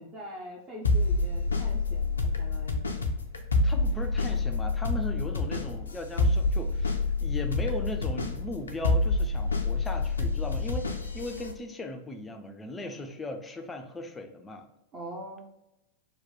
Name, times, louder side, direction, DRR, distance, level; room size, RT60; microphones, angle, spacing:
voice 1, 0.0-2.9 14.9-15.4, equal, 30° right, -4 dB, 0.6 m, -43 dB
sound 1, 0.8-11.5, left 3 dB, 75° left, 0.4 m, -27 dB
voice 2, 3.6-14.7, left 1 dB, 15° left, 5 dB, 0.4 m, -38 dB
3.0 x 2.2 x 3.7 m, 0.87 s
figure-of-eight pair, 90°, 0 cm